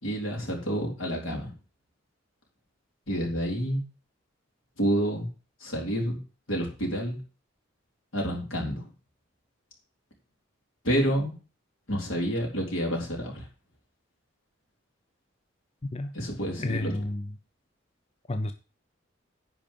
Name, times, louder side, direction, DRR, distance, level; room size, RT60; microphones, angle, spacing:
voice 1, 0.0-1.5 3.1-3.8 4.8-5.3 5.6-6.2 6.5-7.2 8.1-8.9 10.8-11.3 11.9-13.5 16.1-16.9, equal, 85° left, 0 dB, 3.8 m, -28 dB
voice 2, 16.6-17.2 18.3-18.5, left 1 dB, 30° left, 8 dB, 0.6 m, -30 dB
10.5 x 4.5 x 7.0 m, 0.34 s
head